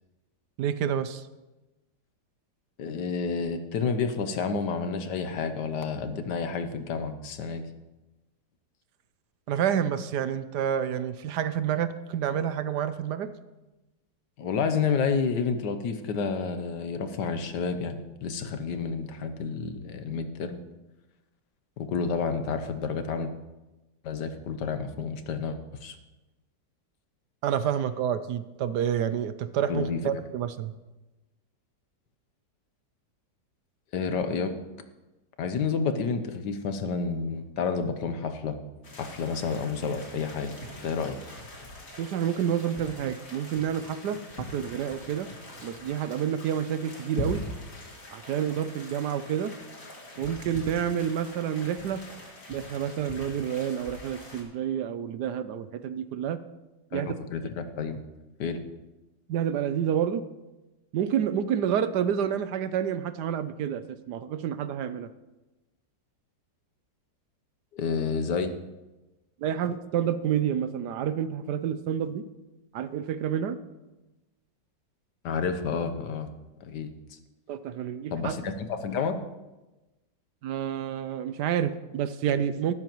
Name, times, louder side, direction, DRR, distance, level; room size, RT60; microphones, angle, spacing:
voice 1, 0.6-1.2 9.5-13.3 27.4-30.7 42.0-45.3 45.6-47.4 48.1-49.5 50.2-52.0 52.5-56.4 56.9-57.1 59.3-60.2 60.9-65.1 69.4-72.2 72.7-73.6 77.5-78.3 80.4-82.7, right 9 dB, 70° right, 12 dB, 1.1 m, -29 dB
voice 2, 2.8-7.6 14.4-20.6 21.8-23.3 24.0-26.0 29.7-30.2 33.9-34.5 35.4-38.6 38.9-40.6 40.8-41.2 56.9-58.0 58.4-58.6 67.7-68.5 75.2-76.3 76.6-76.9 78.1-79.2, left 5 dB, 70° left, 9 dB, 1.4 m, -30 dB
sound 1, 38.8-54.4, left 2 dB, 45° left, 2.6 m, -42 dB
15.5 x 12.5 x 3.0 m, 1.1 s
omnidirectional pair, 2.0 m